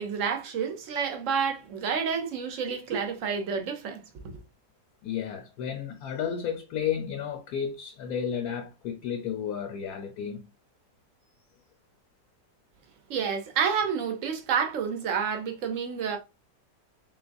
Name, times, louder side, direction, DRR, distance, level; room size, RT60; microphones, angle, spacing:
voice 1, 0.0-4.4 13.1-16.2, right 6 dB, 60° right, 0.9 m, -29 dB
voice 2, 5.0-10.5, left 8 dB, 65° left, 1.0 m, -32 dB
3.9 x 3.6 x 2.5 m
omnidirectional pair, 1.9 m